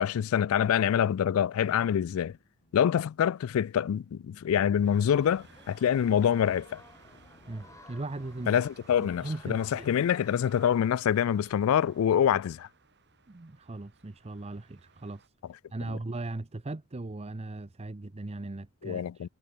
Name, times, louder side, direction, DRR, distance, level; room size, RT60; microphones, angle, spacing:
voice 1, 0.0-2.4 2.7-6.8 8.5-12.7 18.8-19.3, left 9 dB, 75° left, 0.3 m, -26 dB
sound 1, 0.6-8.6, left 1 dB, 55° left, 3.1 m, -64 dB
sound 2, 4.7-10.0, left 2 dB, 15° left, 1.1 m, -56 dB
sound 3, 4.8-15.3, right 5 dB, 55° right, 5.3 m, -57 dB
voice 2, 7.5-8.5 9.0-9.9 13.3-15.3 15.7-19.3, right 2 dB, 30° right, 0.7 m, -38 dB
head